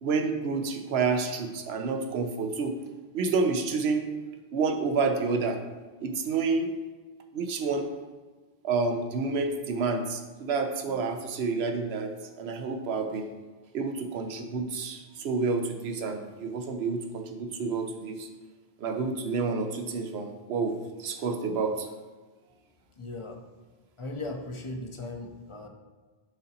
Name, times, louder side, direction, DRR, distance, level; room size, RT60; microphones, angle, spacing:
voice 1, 0.0-2.8 3.1-4.1 4.5-5.6 6.0-6.7 7.3-7.9 8.6-12.1 12.4-13.3 13.7-18.3 18.8-21.9, right 4 dB, 85° right, 5 dB, 1.0 m, -29 dB
voice 2, 23.0-23.4 24.0-25.7, left 2 dB, 35° left, 3 dB, 0.6 m, -37 dB
10.5 x 3.8 x 2.8 m, 1.3 s
omnidirectional pair, 1.0 m